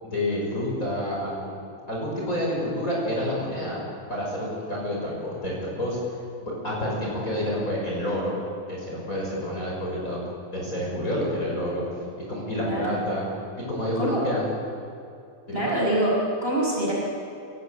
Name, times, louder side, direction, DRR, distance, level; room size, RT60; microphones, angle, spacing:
voice 1, 0.0-1.5 1.9-3.8 4.1-6.0 6.4-8.3 8.7-10.2 10.5-11.8 12.3-13.3 13.7-14.5 15.5-15.7, left 1 dB, 25° left, -4 dB, 6.4 m, -28 dB
voice 2, 15.5-16.9, right 1 dB, 20° right, -5 dB, 6.7 m, -25 dB
29.0 x 18.0 x 8.4 m, 2.6 s
omnidirectional pair, 3.4 m